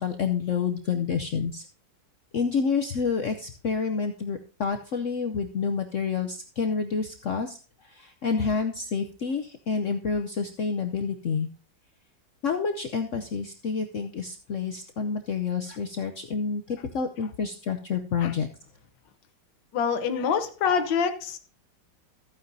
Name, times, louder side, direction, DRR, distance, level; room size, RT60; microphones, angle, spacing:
voice 1, 0.0-1.7 2.3-11.5 12.4-18.5, left 5 dB, 60° left, 6 dB, 0.9 m, -28 dB
voice 2, 19.7-21.4, left 6 dB, 80° left, 8 dB, 1.7 m, -25 dB
14.5 x 9.2 x 2.7 m, 0.39 s
omnidirectional pair, 2.0 m